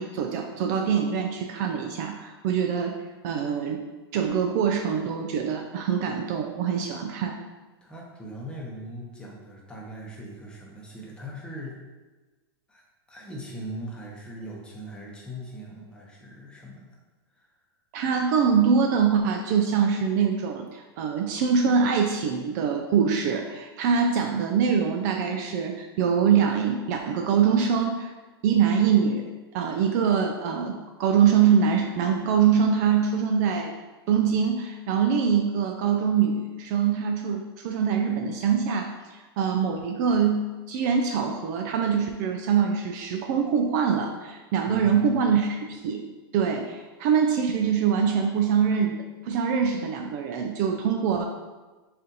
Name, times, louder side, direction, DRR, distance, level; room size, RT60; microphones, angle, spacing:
voice 1, 0.0-3.0 3.2-3.8 4.1-7.3 17.9-28.1 28.4-29.2 29.5-33.7 34.1-46.0 46.3-51.3, right 7 dB, 45° right, 3 dB, 0.4 m, -24 dB
voice 2, 7.8-11.8 12.7-12.8 13.1-16.9 17.3-17.5 44.7-45.1, equal, 5° left, -3 dB, 0.8 m, -40 dB
4.2 x 2.5 x 3.8 m, 1.2 s
hypercardioid pair, 140°, 14 cm